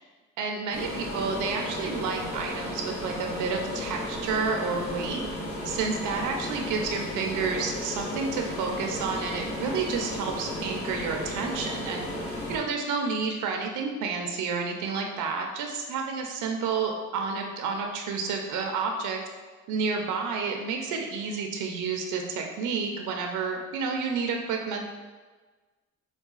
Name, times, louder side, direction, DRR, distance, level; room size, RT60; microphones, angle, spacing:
voice 1, 0.4-5.3 5.6-12.1 12.5-19.2 19.7-24.8, right 5 dB, 85° right, 2 dB, 0.5 m, -30 dB
sound 1, 0.7-12.6, left 1 dB, 50° left, 1.0 m, -34 dB
4.7 x 2.3 x 2.3 m, 1.3 s
cardioid pair, 90°, 30 cm